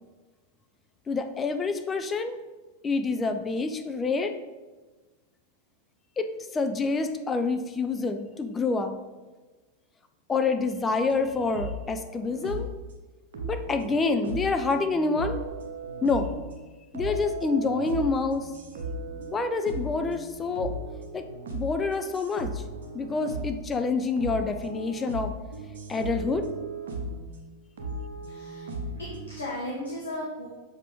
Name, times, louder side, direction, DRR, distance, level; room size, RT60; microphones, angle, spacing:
voice 1, 1.1-2.4 2.8-4.4 6.2-9.0 10.3-12.7 13.4-15.4 16.0-16.3 16.9-18.5 19.3-20.7 21.1-21.2 21.5-22.6 22.9-25.3 25.9-26.5, left 4 dB, 20° left, 8 dB, 0.5 m, -27 dB
sound 1, 11.1-12.8 13.3-16.6 16.9-27.4 27.8-29.4, right 1 dB, 60° right, 1.0 m, -37 dB
voice 2, 28.2-30.5, left 1 dB, 70° left, -4 dB, 1.2 m, -36 dB
6.7 x 5.0 x 3.5 m, 1.3 s
figure-of-eight pair, 90°, 0 cm